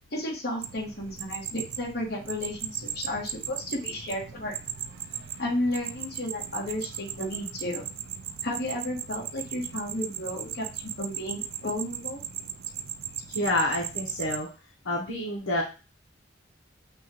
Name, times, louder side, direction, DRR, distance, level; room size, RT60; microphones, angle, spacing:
voice 1, 0.1-4.5 5.4-7.9 8.4-12.2, left 1 dB, 55° left, -2 dB, 1.5 m, -33 dB
sound 1, 0.6-14.4, right 10 dB, 90° right, 0.4 m, -37 dB
voice 2, 13.3-14.5 14.8-15.6, left 1 dB, 80° left, -1 dB, 1.0 m, -28 dB
6.8 x 2.4 x 3.0 m, 0.31 s
head